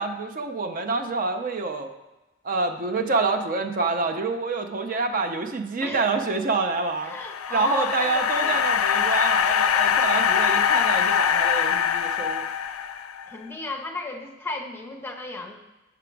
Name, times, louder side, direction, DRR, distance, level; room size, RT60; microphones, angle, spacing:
voice 1, 0.0-1.9 2.4-7.1 7.5-12.5, right 3 dB, 40° right, 6 dB, 0.5 m, -27 dB
sound 1, 6.9-13.3, left 8 dB, 90° left, 0.4 m, -23 dB
voice 2, 7.1-8.6 13.3-15.6, left 2 dB, 10° left, 2 dB, 0.7 m, -34 dB
6.0 x 5.9 x 4.6 m, 1.0 s
head